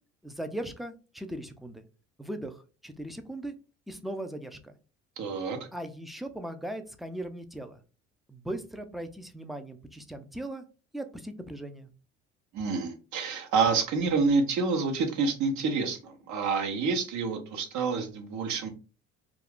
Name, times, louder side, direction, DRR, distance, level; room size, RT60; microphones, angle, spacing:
voice 1, 0.2-1.8 2.2-3.6 3.9-4.7 5.7-7.8 8.3-10.6 10.9-11.9, right 1 dB, ahead, 7 dB, 0.4 m, -38 dB
voice 2, 5.2-5.6 12.5-18.7, right 4 dB, 65° right, 4 dB, 0.9 m, -28 dB
2.4 x 2.3 x 3.4 m, 0.35 s
supercardioid pair, 80°, 32 cm